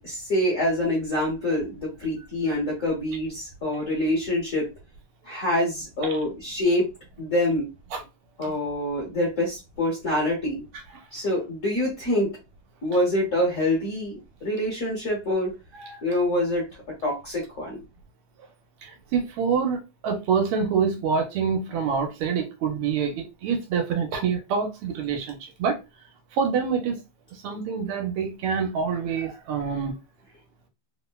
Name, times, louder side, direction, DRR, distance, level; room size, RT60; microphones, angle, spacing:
voice 1, 0.0-4.7 5.3-6.9 7.2-7.7 8.4-10.6 11.1-12.3 12.8-15.5 16.0-16.7 17.0-17.8, left 1 dB, 45° left, 1.1 m, -25 dB
voice 2, 18.8-25.8 26.3-27.0 27.4-29.9, right 6 dB, 80° right, 1.6 m, -26 dB
3.6 x 2.1 x 2.2 m
omnidirectional pair, 2.4 m